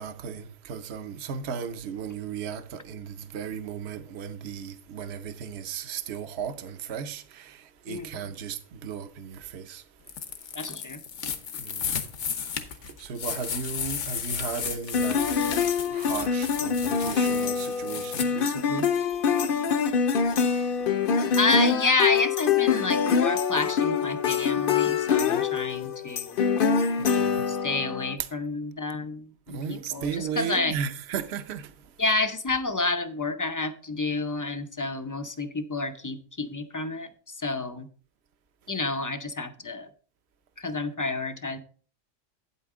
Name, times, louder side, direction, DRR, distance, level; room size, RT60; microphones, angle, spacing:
voice 1, 0.0-9.8 11.6-11.9 13.0-15.2 15.9-18.9 27.0-27.5 28.2-28.3 29.5-31.7, right 7 dB, 60° right, 1.0 m, -35 dB
voice 2, 7.9-8.2 10.5-11.0 21.4-26.4 27.5-30.8 32.0-37.9 38.7-39.9 40.6-41.6, left 3 dB, 25° left, 0.4 m, -29 dB
sound 1, 10.1-18.3, left 7 dB, 75° left, 1.3 m, -34 dB
sound 2, 14.9-28.1, left 6 dB, 55° left, 0.8 m, -25 dB
8.9 x 8.5 x 3.6 m
omnidirectional pair, 1.3 m